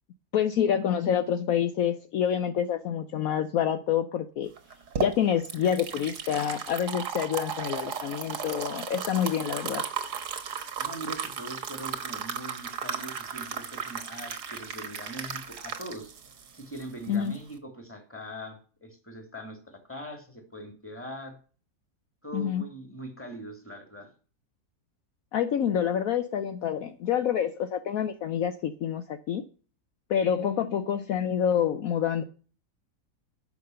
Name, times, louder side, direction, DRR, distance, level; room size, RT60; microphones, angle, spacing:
voice 1, 0.3-4.5 5.0-9.8 17.1-17.3 22.3-22.6 25.3-29.4 30.1-32.2, left 9 dB, 65° left, 9 dB, 1.1 m, -27 dB
sound 1, 4.6-17.5, right 7 dB, 85° right, 1.9 m, -35 dB
voice 2, 10.8-16.1 16.5-21.4 22.2-24.1, right 1 dB, 10° left, 4 dB, 2.4 m, -42 dB
10.5 x 6.2 x 7.8 m, 0.40 s
omnidirectional pair, 1.7 m